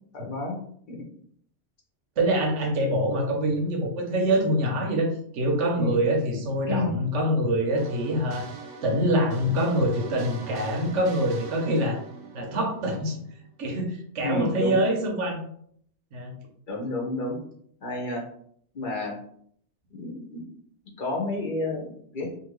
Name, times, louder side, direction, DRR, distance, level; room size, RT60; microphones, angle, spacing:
voice 1, 0.1-0.6 0.9-1.0 5.7-6.0 6.7-6.9 14.2-14.8 16.7-17.4 17.8-18.2 18.7-19.1 19.9-20.4 21.0-22.3, left 2 dB, 50° left, -1 dB, 0.9 m, -30 dB
voice 2, 2.2-8.5 8.8-12.0 12.3-13.2 13.6-15.4 16.1-16.3, right 1 dB, 85° right, 2 dB, 1.1 m, -25 dB
sound 1, 7.8-13.5, right 4 dB, 70° right, 0.8 m, -43 dB
2.8 x 2.6 x 3.0 m, 0.63 s
omnidirectional pair, 1.2 m